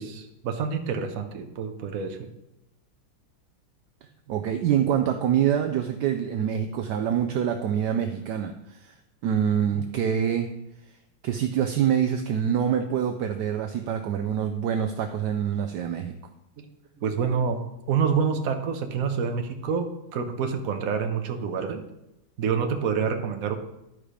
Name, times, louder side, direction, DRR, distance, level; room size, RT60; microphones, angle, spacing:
voice 1, 0.0-2.3 7.3-7.5 16.6-16.7 17.0-21.8 22.4-23.6, right 6 dB, 55° right, 6 dB, 1.1 m, -28 dB
voice 2, 4.3-8.9 9.2-10.5 11.2-16.1, right 9 dB, 70° right, 7 dB, 1.0 m, -25 dB
11.5 x 4.9 x 5.0 m, 0.91 s
omnidirectional pair, 2.3 m